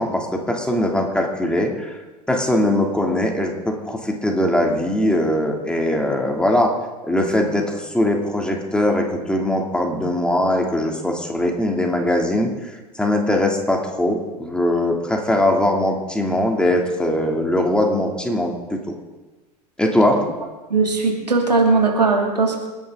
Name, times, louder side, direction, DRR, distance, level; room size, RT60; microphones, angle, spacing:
voice 1, 0.0-2.0 2.3-6.7 7.0-12.5 13.0-18.9 19.8-20.2, left 1 dB, 5° left, 1 dB, 2.8 m, -21 dB
voice 2, 20.7-22.6, right 3 dB, 85° right, 1 dB, 2.7 m, -18 dB
28.0 x 10.5 x 3.9 m, 1.2 s
figure-of-eight pair, 80°, 21 cm